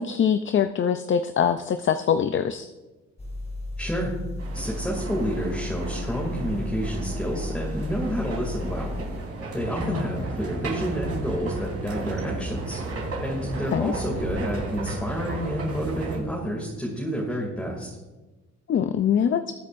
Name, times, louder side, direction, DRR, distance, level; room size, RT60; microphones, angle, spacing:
voice 1, 0.0-2.7 9.8-10.0 13.7-13.9 18.7-19.5, left 8 dB, 40° left, 10 dB, 0.5 m, -23 dB
sound 1, 3.2-9.3, left 1 dB, 20° left, 1.8 m, -34 dB
voice 2, 3.8-4.1 4.5-8.9 9.5-12.8 13.2-17.9, equal, 5° left, -3 dB, 2.5 m, -29 dB
sound 2, 4.4-16.2, right 2 dB, 50° right, 3.9 m, -34 dB
21.0 x 8.2 x 2.6 m, 1.2 s
cardioid pair, 90°, 30 cm